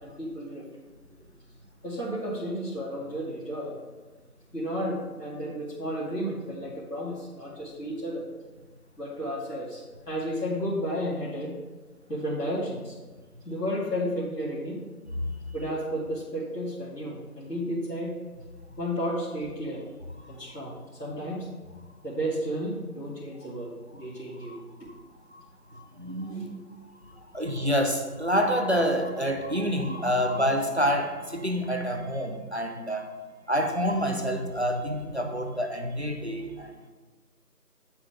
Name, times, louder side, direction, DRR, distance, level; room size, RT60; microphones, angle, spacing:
voice 1, 0.0-0.7 1.8-3.7 4.5-8.3 9.0-11.5 12.1-12.9 13.5-14.8 15.5-18.2 18.8-19.8 20.3-20.7 21.0-21.5 22.0-24.6 26.3-26.5, equal, 90° left, -8 dB, 2.4 m, -32 dB
voice 2, 25.7-26.5 27.3-33.2 33.5-36.7, equal, 45° right, 4 dB, 0.7 m, -27 dB
9.1 x 7.0 x 3.6 m, 1.3 s
figure-of-eight pair, 175°, 47 cm